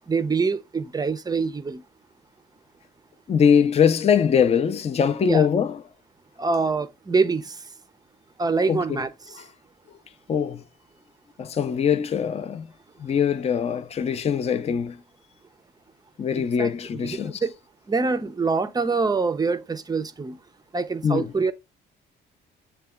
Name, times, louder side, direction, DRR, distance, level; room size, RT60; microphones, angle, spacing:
voice 1, 0.1-1.8 5.2-5.5 6.4-7.6 8.4-9.4 16.4-17.5 17.9-20.4 20.7-21.5, right 4 dB, 20° right, 0.5 m, -25 dB
voice 2, 3.3-5.8 8.7-9.0 9.4-9.5 10.3-10.6 11.4-12.7 13.0-15.0 16.2-17.4 21.0-21.3, left 7 dB, 30° left, 0.4 m, -22 dB
6.6 x 2.2 x 3.5 m
cardioid pair, 90°, 20 cm